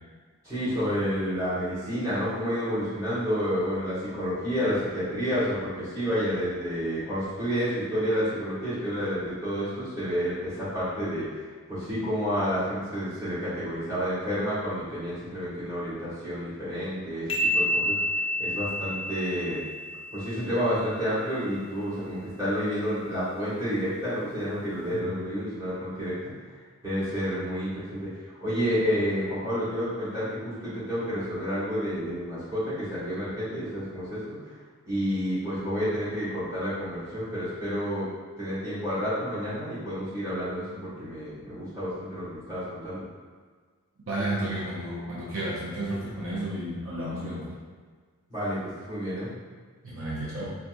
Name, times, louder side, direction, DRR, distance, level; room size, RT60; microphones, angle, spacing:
voice 1, 0.4-11.3 11.7-18.0 18.4-19.6 20.1-26.3 26.8-28.1 28.4-34.4 34.8-38.1 38.4-43.0 48.3-49.3, equal, 15° right, -13 dB, 1.5 m, -30 dB
sound 1, 17.3-20.8, equal, 25° left, 0.4 m, -29 dB
voice 2, 44.1-47.5 49.8-50.5, right 1 dB, 65° right, -7 dB, 0.6 m, -32 dB
4.0 x 2.3 x 2.5 m, 1.5 s
head